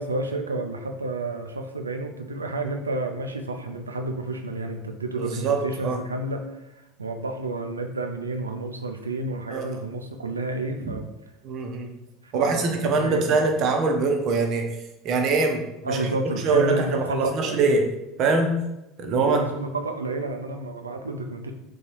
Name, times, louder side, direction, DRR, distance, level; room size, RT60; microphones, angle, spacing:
voice 1, 0.0-6.4 7.0-11.1 12.2-13.5 15.8-17.8 19.1-21.5, right 2 dB, 80° right, 4 dB, 0.4 m, -30 dB
voice 2, 5.1-6.0 9.5-9.8 11.4-11.9 12.3-14.7 15.0-16.1 16.4-17.8 18.2-18.6 19.0-19.4, right 3 dB, 45° right, 3 dB, 0.7 m, -23 dB
4.0 x 2.3 x 4.5 m, 0.91 s
figure-of-eight pair, 70°, 0 cm